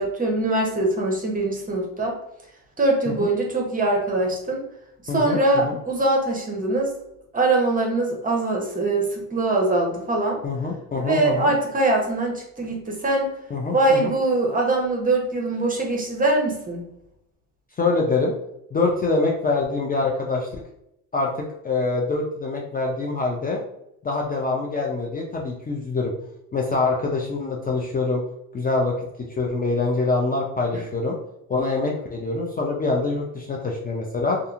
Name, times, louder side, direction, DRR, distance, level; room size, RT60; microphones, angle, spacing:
voice 1, 0.0-2.2 2.8-4.6 5.0-6.9 7.3-10.4 11.0-13.3 13.7-16.8 30.7-30.8, right 2 dB, 20° right, 0 dB, 0.8 m, -22 dB
voice 2, 5.1-5.8 10.4-11.5 13.5-14.1 17.8-18.3 18.7-20.6 21.1-23.6 24.0-26.1 26.5-28.2 28.5-28.9 29.4-31.2 31.5-34.4, left 3 dB, 25° left, -1 dB, 0.4 m, -25 dB
2.7 x 2.4 x 2.4 m, 0.81 s
supercardioid pair, 85°, 37 cm